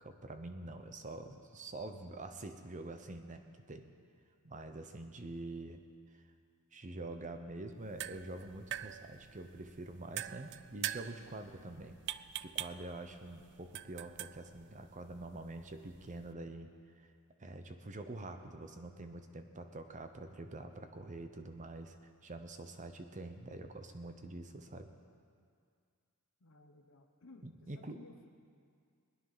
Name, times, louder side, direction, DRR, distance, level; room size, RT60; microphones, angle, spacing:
voice 1, 0.0-3.4 3.7-3.9 4.4-5.8 6.7-12.0 12.4-16.7 17.0-17.1 17.4-24.9 27.4-28.0, right 2 dB, 35° right, 7 dB, 0.9 m, -46 dB
sound 1, 7.7-16.3, right 12 dB, 50° right, 0.3 m, -45 dB
voice 2, 26.4-28.3, left 2 dB, 60° left, 3 dB, 1.1 m, -58 dB
21.0 x 10.0 x 5.7 m, 2.2 s
head